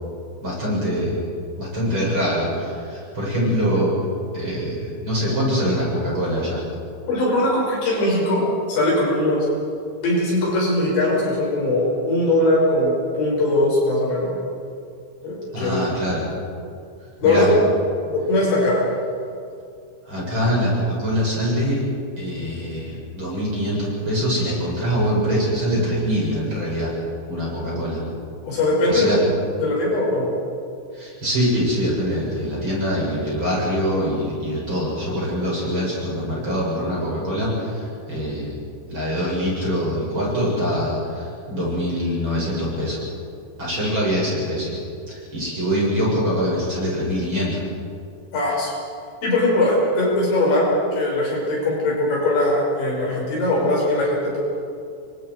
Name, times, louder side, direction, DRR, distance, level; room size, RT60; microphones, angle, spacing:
voice 1, 0.4-1.2 1.6-4.0 4.3-6.6 15.5-16.2 17.2-17.5 20.0-21.8 22.2-26.9 27.3-28.0 28.8-29.2 30.9-38.5 38.9-43.0 43.6-44.8 45.1-47.6, equal, 25° right, -6 dB, 7.9 m, -24 dB
voice 2, 7.1-8.4 8.7-9.5 10.0-14.4 15.2-15.8 17.2-17.7 18.1-18.8 28.4-29.3 29.6-30.3 48.3-48.7 49.2-54.4, left 1 dB, 65° left, -4 dB, 8.6 m, -20 dB
30.0 x 24.0 x 4.9 m, 2.4 s
omnidirectional pair, 5.5 m